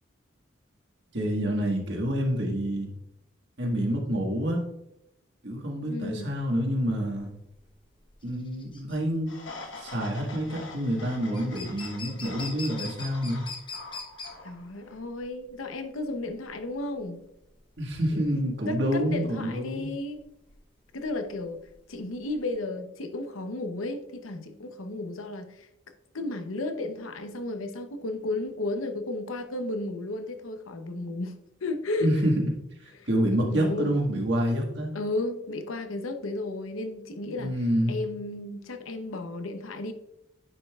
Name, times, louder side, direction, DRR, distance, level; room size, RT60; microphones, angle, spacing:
voice 1, 1.1-2.9 3.6-4.6 5.4-7.3 8.2-9.3 9.8-13.5 17.8-19.9 32.0-32.3 33.1-34.9 37.4-38.0, equal, 60° right, 0 dB, 1.6 m, -27 dB
voice 2, 5.9-6.3 14.4-17.2 18.1-18.4 18.7-20.2 20.9-21.6 21.9-25.7 26.1-31.3 31.6-32.1 32.9-33.1 33.5-34.0 34.9-37.6 37.9-39.9, left 2 dB, 90° left, 7 dB, 0.8 m, -33 dB
sound 1, 6.2-22.5, left 4 dB, 25° left, 0.8 m, -44 dB
sound 2, 9.3-15.0, left 3 dB, 70° left, 1.1 m, -44 dB
9.6 x 5.4 x 2.4 m, 0.83 s
head